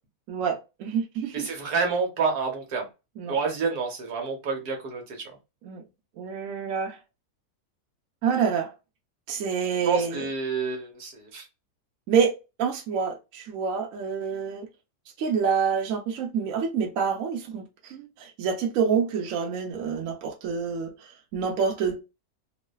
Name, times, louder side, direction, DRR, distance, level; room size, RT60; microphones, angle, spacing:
voice 1, 0.3-1.5 3.2-3.4 5.6-5.8 6.2-7.0 8.2-8.7 9.3-10.3 12.1-12.3 12.6-14.7 15.2-22.0, right 6 dB, 65° right, 1.0 m, -27 dB
voice 2, 1.3-2.9 3.3-5.3 9.8-11.4, right 4 dB, 85° right, 1.4 m, -28 dB
3.1 x 2.1 x 2.2 m
omnidirectional pair, 1.6 m